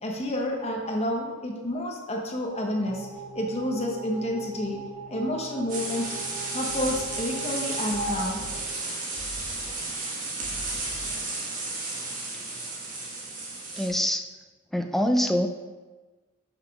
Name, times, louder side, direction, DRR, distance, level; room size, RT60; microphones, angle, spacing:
voice 1, 0.0-3.1 3.3-4.8 5.1-6.1 6.5-8.4, left 1 dB, 30° left, 1 dB, 1.0 m, -29 dB
sound 1, 2.8-9.3, right 3 dB, 65° right, 2.1 m, -39 dB
sound 2, 5.7-13.9, right 3 dB, 40° right, 1.7 m, -33 dB
sound 3, 6.7-7.6 7.9-8.9 9.2-10.1 10.4-11.4, equal, 75° left, 1.8 m, -44 dB
voice 2, 13.7-14.3 14.7-15.5, equal, ahead, 5 dB, 0.4 m, -24 dB
6.0 x 5.6 x 5.8 m, 1.3 s
head